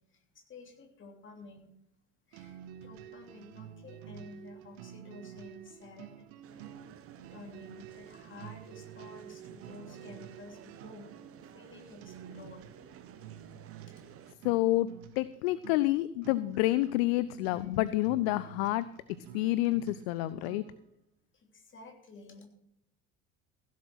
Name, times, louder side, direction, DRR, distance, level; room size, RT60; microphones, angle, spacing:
voice 1, 0.0-1.7 2.3-6.6 7.3-11.2 11.5-12.7 21.3-22.5, left 3 dB, 30° left, 2 dB, 3.1 m, -51 dB
sound 1, 2.3-20.9, right 10 dB, 55° right, 1.0 m, -50 dB
sound 2, 6.4-14.4, right 8 dB, 35° right, 1.1 m, -54 dB
voice 2, 14.4-14.9 15.2-18.9 19.3-20.6, left 16 dB, 55° left, 16 dB, 0.6 m, -28 dB
16.0 x 7.2 x 6.1 m, 0.77 s
figure-of-eight pair, 65°, 38 cm